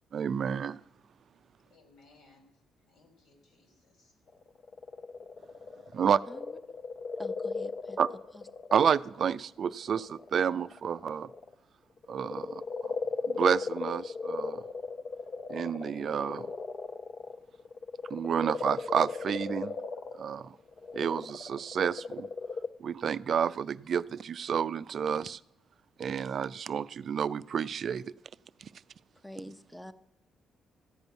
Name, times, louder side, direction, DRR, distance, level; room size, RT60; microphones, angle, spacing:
voice 1, 0.1-0.8 5.9-6.2 8.0-8.1 8.7-11.3 12.1-12.6 13.3-14.6 15.5-16.5 18.1-19.7 20.2-20.5 20.9-22.3 22.8-25.4 26.0-28.1, right 7 dB, 55° right, 17 dB, 0.3 m, -30 dB
voice 2, 1.7-2.5 2.9-4.2, left 3 dB, 80° left, 4 dB, 3.2 m, -62 dB
sound 1, 4.3-9.3 9.8-11.5 12.0-22.7, left 4 dB, 45° left, 0.7 m, -37 dB
voice 3, 6.3-6.8 7.2-8.0 8.3-8.5 29.2-29.9, left 1 dB, 5° left, 12 dB, 0.6 m, -46 dB
14.0 x 5.3 x 9.3 m, 0.83 s
cardioid pair, 90°, 0 cm